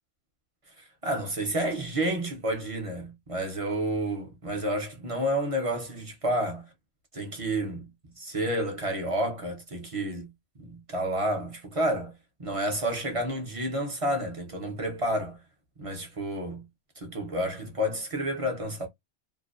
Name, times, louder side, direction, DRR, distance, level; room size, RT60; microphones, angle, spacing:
voice 1, 0.8-6.7 7.1-7.9 8.2-10.3 10.6-12.1 12.4-15.4 15.8-16.6 17.0-18.9, right 1 dB, 40° right, 0.5 m, -30 dB
2.6 x 2.1 x 2.2 m
omnidirectional pair, 1.3 m